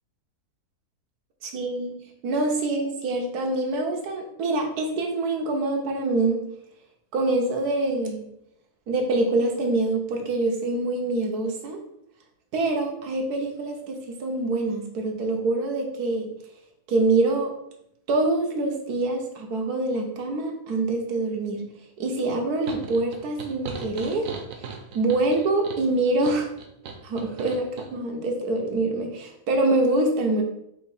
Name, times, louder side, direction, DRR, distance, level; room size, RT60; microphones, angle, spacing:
voice 1, 1.4-6.5 7.1-8.2 8.9-11.8 12.5-16.3 16.9-17.5 18.1-21.6 22.0-24.3 24.9-26.5 27.0-30.4, right 2 dB, 90° right, 2 dB, 1.4 m, -25 dB
sound 1, 22.7-27.9, right 5 dB, 70° right, 1.0 m, -38 dB
4.7 x 2.8 x 4.0 m, 0.77 s
omnidirectional pair, 1.6 m